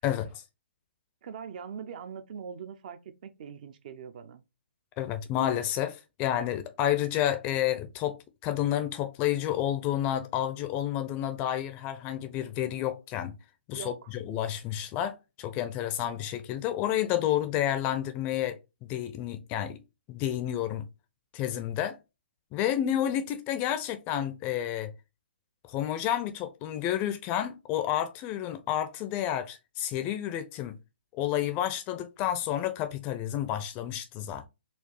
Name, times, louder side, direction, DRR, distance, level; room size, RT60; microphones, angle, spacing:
voice 1, 1.2-4.4 13.7-14.1, right 7 dB, 45° right, 0.6 m, -42 dB
voice 2, 5.0-8.2 8.4-13.4 13.7-19.8 20.1-20.9 21.3-22.0 22.5-24.9 25.6-30.8 31.1-34.5, left 11 dB, 25° left, 0.5 m, -30 dB
4.2 x 2.3 x 3.1 m
figure-of-eight pair, 135°, 6 cm